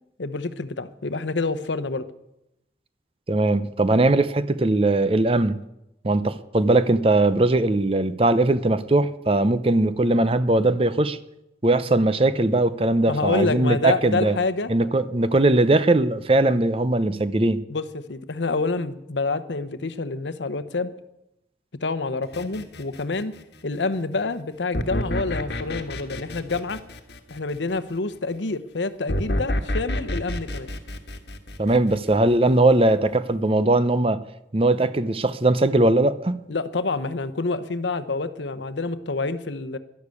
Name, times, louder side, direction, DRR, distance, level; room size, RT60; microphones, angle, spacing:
voice 1, 0.2-2.1 13.1-14.7 17.7-20.9 21.8-23.3 23.6-26.8 27.3-30.7 36.5-39.8, left 3 dB, 85° left, 14 dB, 0.9 m, -27 dB
voice 2, 3.3-5.6 6.0-11.2 11.6-14.4 14.7-17.6 31.6-34.2 34.5-36.4, right 2 dB, 30° right, 14 dB, 0.7 m, -20 dB
sound 1, 22.3-23.5 24.7-27.8 29.1-32.3, left 1 dB, 65° left, 1.4 m, -29 dB
11.5 x 11.5 x 8.4 m, 0.87 s
head